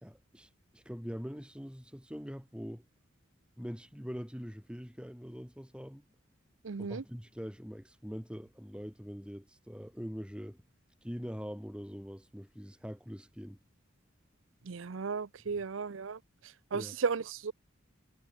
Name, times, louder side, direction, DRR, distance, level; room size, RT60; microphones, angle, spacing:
voice 1, 0.0-2.8 3.6-6.0 6.8-10.6 11.0-13.6 15.4-15.6 16.7-16.9, equal, 5° right, 4.4 m, -43 dB
voice 2, 6.6-7.0 14.7-16.2 16.7-17.5, right 5 dB, 90° right, 0.6 m, -34 dB
head